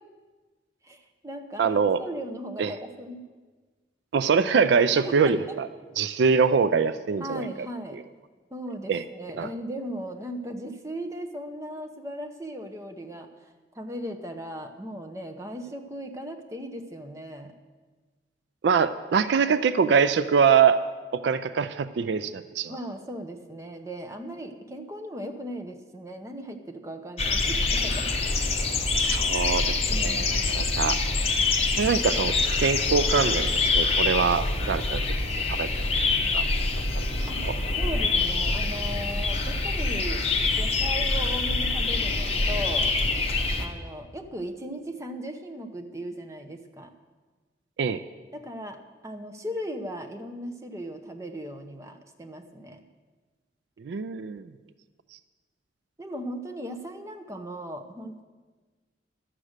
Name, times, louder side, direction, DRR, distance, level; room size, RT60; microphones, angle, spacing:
voice 1, 0.8-3.2 5.0-5.5 7.2-8.0 8.5-17.5 22.7-28.1 29.9-30.6 37.3-37.4 37.8-40.3 40.6-42.9 43.6-46.9 48.3-52.8 56.0-58.2, equal, 15° right, 5 dB, 0.7 m, -37 dB
voice 2, 1.6-2.0 2.6-2.7 4.1-5.7 6.0-7.5 8.9-9.0 9.4-9.5 18.6-20.8 21.1-22.7 29.0-31.3 31.7-35.0 35.5-35.7 36.3-36.4 37.0-37.5 47.8-48.0 53.8-54.5, right 6 dB, 65° right, 13 dB, 0.4 m, -24 dB
sound 1, 27.2-43.7, left 3 dB, 35° left, 0.8 m, -25 dB
12.0 x 7.5 x 6.5 m, 1.4 s
head